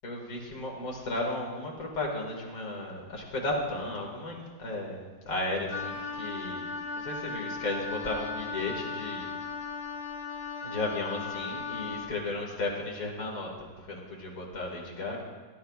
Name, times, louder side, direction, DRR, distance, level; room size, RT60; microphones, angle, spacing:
voice 1, 0.0-6.7 6.9-9.3 10.6-13.5 13.8-15.2, left 2 dB, 55° left, -1 dB, 2.3 m, -34 dB
Wind instrument woodwind instrument, 5.7-12.1, left 4 dB, 30° left, 0.9 m, -37 dB
15.5 x 11.5 x 2.4 m, 1.4 s
omnidirectional pair, 1.8 m